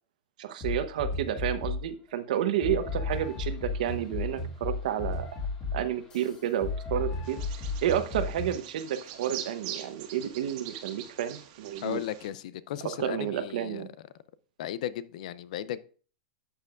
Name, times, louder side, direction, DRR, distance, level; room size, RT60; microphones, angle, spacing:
voice 1, 0.4-5.3 5.7-7.4 7.8-12.0 13.0-13.9, right 10 dB, 65° right, 1.0 m, -31 dB
sound 1, 0.6-1.9 2.6-8.6, left 4 dB, 20° left, 2.9 m, -34 dB
Bird vocalization bird call bird song, 7.2-12.3, right 11 dB, 45° right, 1.6 m, -43 dB
voice 2, 11.8-13.9 14.6-15.8, left 11 dB, 60° left, 0.5 m, -35 dB
11.5 x 7.5 x 2.5 m
supercardioid pair, 160°, 5 cm